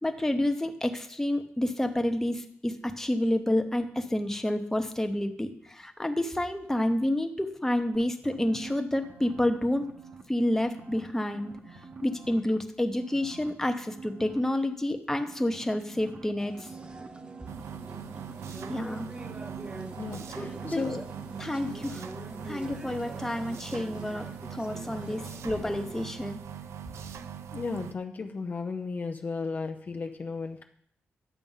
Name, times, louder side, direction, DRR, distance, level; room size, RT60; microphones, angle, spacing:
voice 1, 0.0-9.9 10.3-16.5 18.7-19.1 20.4-20.9 21.4-22.0 22.5-26.4, left 1 dB, 10° left, 6 dB, 1.0 m, -29 dB
sound 1, 7.9-10.2 10.5-12.6 12.9-14.4 15.3-20.9 21.2-21.3, right 5 dB, 40° right, 1.2 m, -46 dB
sound 2, 16.4-26.0, right 2 dB, 20° right, 0.8 m, -44 dB
sound 3, 17.5-27.9, right 8 dB, 85° right, 0.6 m, -42 dB
voice 2, 20.0-21.0 27.5-30.6, left 4 dB, 40° left, 4 dB, 0.7 m, -34 dB
11.0 x 6.9 x 5.6 m, 0.65 s
wide cardioid pair, 115°, 5 cm